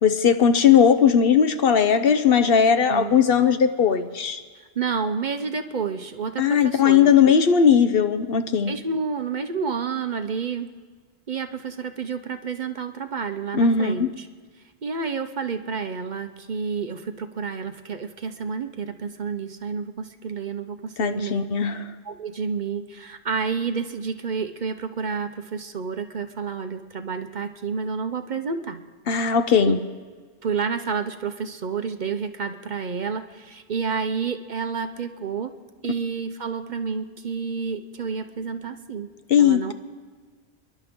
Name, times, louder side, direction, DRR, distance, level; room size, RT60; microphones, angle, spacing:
voice 1, 0.0-4.4 6.4-8.8 13.5-14.1 21.0-21.9 29.1-29.8 39.3-39.7, left 7 dB, 65° left, 10 dB, 0.9 m, -18 dB
voice 2, 2.9-3.2 4.6-7.3 8.7-10.7 11.3-14.3 14.8-21.5 22.0-28.8 29.2-29.3 29.6-29.7 30.4-35.5 35.8-39.1 39.4-39.7, right 5 dB, 50° right, 8 dB, 0.8 m, -30 dB
26.0 x 11.5 x 3.6 m, 1.5 s
omnidirectional pair, 1.1 m